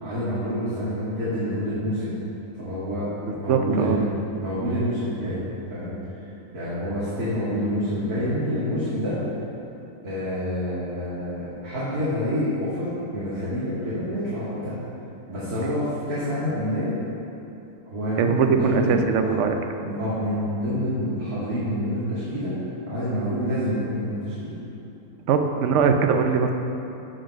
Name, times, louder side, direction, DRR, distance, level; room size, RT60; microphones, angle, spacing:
voice 1, 0.0-2.2 2.5-4.1 4.4-5.4 5.7-6.3 6.5-9.2 10.0-14.8 15.3-17.0 17.9-19.4 19.8-22.5 22.9-24.5, equal, 80° right, -12 dB, 2.6 m, -27 dB
voice 2, 3.2-4.0 18.2-19.5 25.3-26.5, right 6 dB, 60° right, 5 dB, 0.9 m, -21 dB
11.0 x 5.1 x 5.9 m, 2.9 s
omnidirectional pair, 1.6 m